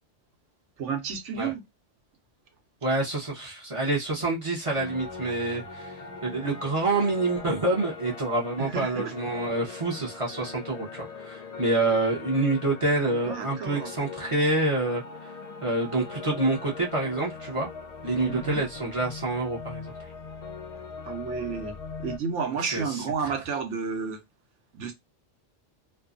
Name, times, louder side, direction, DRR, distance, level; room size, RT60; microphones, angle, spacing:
voice 1, 0.8-1.6 8.6-9.1 13.1-13.9 18.3-18.6 21.0-24.2 24.7-24.9, right 5 dB, 80° right, 1.1 m, -31 dB
voice 2, 2.8-15.3 15.6-17.7 18.0-19.9 22.7-23.0, right 2 dB, 30° right, 0.7 m, -27 dB
sound 1, 4.7-22.2, left 4 dB, 45° left, 0.5 m, -40 dB
2.6 x 2.3 x 2.4 m
omnidirectional pair, 1.2 m